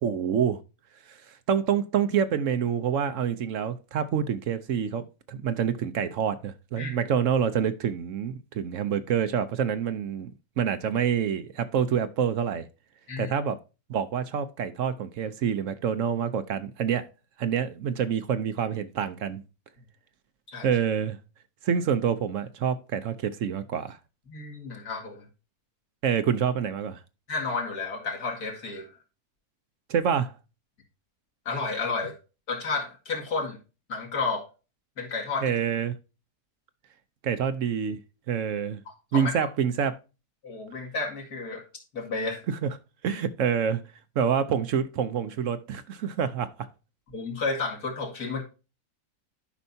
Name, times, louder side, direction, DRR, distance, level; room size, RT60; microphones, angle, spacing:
voice 1, 0.0-0.6 1.1-1.2 1.5-10.3 10.6-12.7 13.2-13.6 13.9-17.1 17.4-19.4 20.6-21.2 21.6-24.0 26.0-27.0 29.9-30.3 35.4-35.9 37.2-38.0 38.3-38.8 39.1-40.0 42.5-42.7 43.0-43.8 44.2-46.7, right 8 dB, 65° right, 1.0 m, -27 dB
voice 2, 24.3-25.3 27.3-28.9 31.5-32.2 32.5-33.6 33.9-34.5 35.0-35.5 38.9-39.5 40.4-41.6 41.9-42.4 47.1-48.4, left 4 dB, 85° left, 2.6 m, -31 dB
11.5 x 5.5 x 2.6 m
omnidirectional pair, 1.6 m